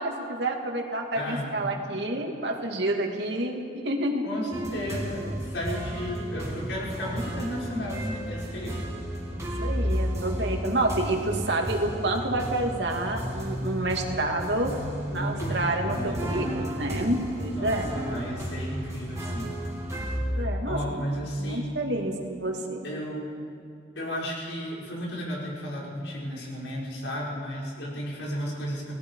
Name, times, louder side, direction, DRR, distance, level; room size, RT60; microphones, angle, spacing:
voice 1, 0.0-4.2 9.3-14.8 15.1-17.9 20.3-21.1 21.3-22.8, right 1 dB, 70° right, 2 dB, 2.6 m, -29 dB
voice 2, 1.2-1.6 4.2-8.8 14.0-14.1 15.1-16.3 17.5-19.6 20.7-21.8 22.8-23.3 24.0-28.9, equal, 85° left, -4 dB, 5.6 m, -33 dB
sound 1, 4.5-20.2, equal, 15° right, 2.9 m, -33 dB
29.0 x 18.5 x 4.9 m, 2.5 s
head